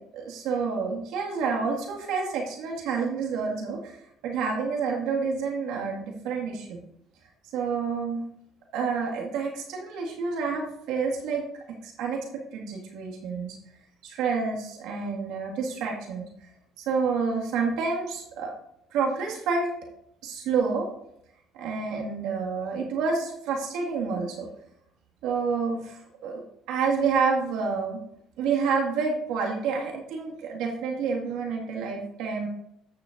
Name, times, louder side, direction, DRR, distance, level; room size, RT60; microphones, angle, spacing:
voice 1, 0.1-4.0 4.2-6.8 7.5-8.2 8.7-11.4 11.8-13.6 14.0-16.3 16.8-18.5 18.9-19.7 20.2-20.9 21.5-24.5 25.2-26.4 26.7-28.0 28.4-32.5, right 5 dB, 75° right, -1 dB, 1.9 m, -28 dB
13.5 x 6.8 x 2.6 m, 0.76 s
supercardioid pair, 65°, 0 cm